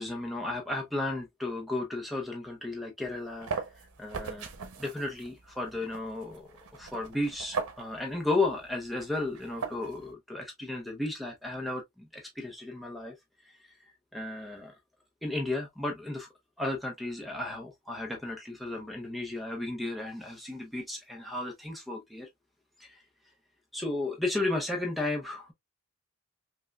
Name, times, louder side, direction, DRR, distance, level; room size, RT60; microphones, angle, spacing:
voice 1, 0.0-4.5 4.8-13.1 13.4-13.7 14.1-14.7 15.2-16.3 16.6-22.3 22.8-23.0 23.7-25.5, left 2 dB, ahead, 0.6 m, -34 dB
sound 1, 3.0-10.1, right 5 dB, 85° right, 0.8 m, -40 dB
5.2 x 2.2 x 2.2 m
head